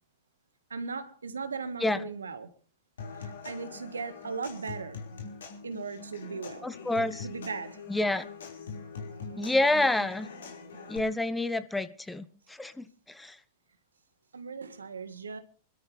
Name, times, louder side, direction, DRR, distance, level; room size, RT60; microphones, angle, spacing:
voice 1, 0.7-2.5 3.2-5.0 5.6-6.7 7.2-7.8 14.3-15.4, right 4 dB, 85° right, 1.6 m, -37 dB
Human voice / Acoustic guitar / Percussion, 3.0-11.0, left 5 dB, 80° left, 5.0 m, -43 dB
voice 2, 6.6-7.3 7.9-8.3 9.4-10.3 10.9-13.4, left 2 dB, 5° left, 1.0 m, -28 dB
27.0 x 13.0 x 3.3 m
hypercardioid pair, 100°, 0 cm